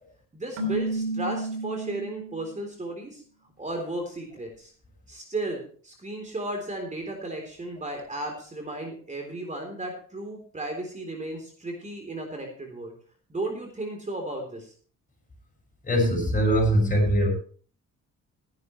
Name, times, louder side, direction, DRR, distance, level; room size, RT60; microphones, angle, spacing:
voice 1, 0.3-3.2 3.6-4.7 5.1-12.9 13.3-14.7, right 2 dB, 25° right, 3 dB, 3.7 m, -34 dB
Keyboard (musical), 0.6-2.5, right 2 dB, 85° right, 3.1 m, -31 dB
voice 2, 15.8-17.3, equal, 25° left, 2 dB, 6.8 m, -22 dB
16.5 x 10.5 x 3.2 m, 0.43 s
cardioid pair, 90°, 30 cm